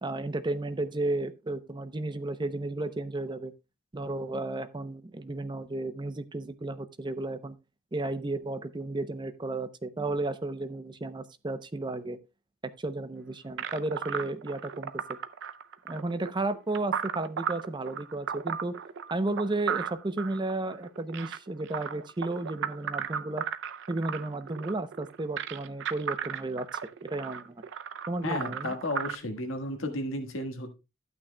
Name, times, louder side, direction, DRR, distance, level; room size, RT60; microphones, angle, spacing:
voice 1, 0.0-3.5 3.9-7.6 7.9-12.2 12.8-15.0 15.8-18.7 19.1-23.4 23.9-26.7 27.0-27.7 28.1-28.7, right 2 dB, 25° right, 0.6 m, -33 dB
sound 1, 13.6-29.1, right 8 dB, 60° right, 0.5 m, -35 dB
voice 2, 28.2-30.7, left 1 dB, 70° left, 1.5 m, -33 dB
12.0 x 8.6 x 2.2 m
head